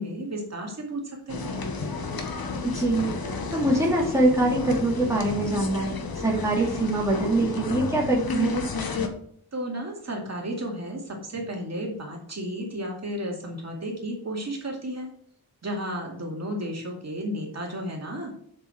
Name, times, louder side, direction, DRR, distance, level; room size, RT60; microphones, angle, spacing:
voice 1, 0.0-1.5 9.5-15.1 15.6-18.3, equal, 45° right, 0 dB, 2.3 m, -33 dB
sound 1, 1.3-9.1, left 3 dB, 70° left, 1.5 m, -31 dB
voice 2, 2.7-3.1 3.5-6.0 6.2-8.5, right 2 dB, 10° right, -2 dB, 2.2 m, -23 dB
7.8 x 6.8 x 5.9 m, 0.63 s
wide cardioid pair, 170°, 37 cm